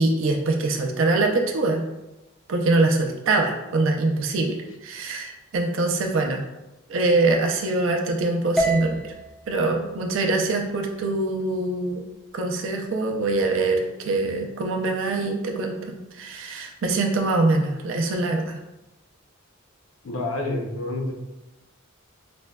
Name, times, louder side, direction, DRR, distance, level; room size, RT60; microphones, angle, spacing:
voice 1, 0.0-1.8 2.5-4.5 4.8-6.4 6.9-9.0 9.5-12.0 12.3-18.6, right 2 dB, 65° right, 2 dB, 0.4 m, -23 dB
sound 1, 8.6-12.7, right 1 dB, ahead, 0.3 m, -32 dB
voice 2, 20.0-21.1, left 2 dB, 75° left, 1 dB, 0.6 m, -28 dB
4.9 x 2.1 x 2.2 m, 1.0 s
head